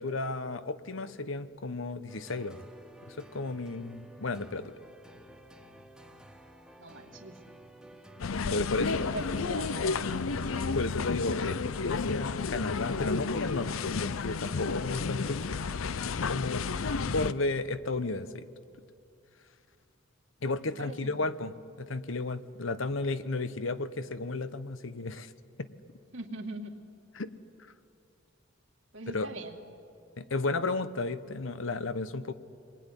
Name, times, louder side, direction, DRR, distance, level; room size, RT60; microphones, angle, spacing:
voice 1, 0.0-2.7 3.1-4.7 8.2-9.1 10.4-15.6 16.1-16.7 17.0-18.5 20.4-25.3 25.6-25.7 27.1-27.3 29.1-29.3 30.2-32.3, left 3 dB, 70° left, 12 dB, 1.0 m, -33 dB
sound 1, 2.1-15.8, right 1 dB, 5° right, 1.6 m, -53 dB
voice 2, 6.8-7.4 8.7-10.0 10.3-10.4 20.8-21.4 26.1-26.8 28.9-29.6, right 2 dB, 65° right, 3 dB, 2.3 m, -42 dB
sound 2, 8.2-17.3, left 4 dB, 90° left, 0.6 m, -32 dB
27.0 x 21.0 x 9.9 m, 2.5 s
head